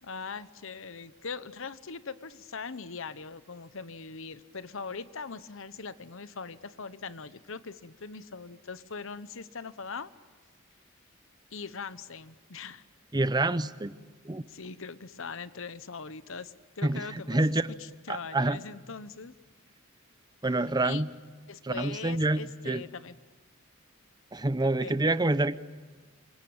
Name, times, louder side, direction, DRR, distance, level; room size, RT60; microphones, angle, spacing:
voice 1, 0.0-10.1 11.5-12.9 14.5-19.3 20.4-21.0 21.5-23.2 24.6-25.1, left 5 dB, 65° left, 15 dB, 1.0 m, -41 dB
voice 2, 13.1-13.9 14.2-14.4 16.8-17.7 18.1-18.6 20.4-21.1 21.6-22.8 24.3-25.6, right 2 dB, 20° right, 14 dB, 0.7 m, -27 dB
27.0 x 23.5 x 8.9 m, 1.4 s
head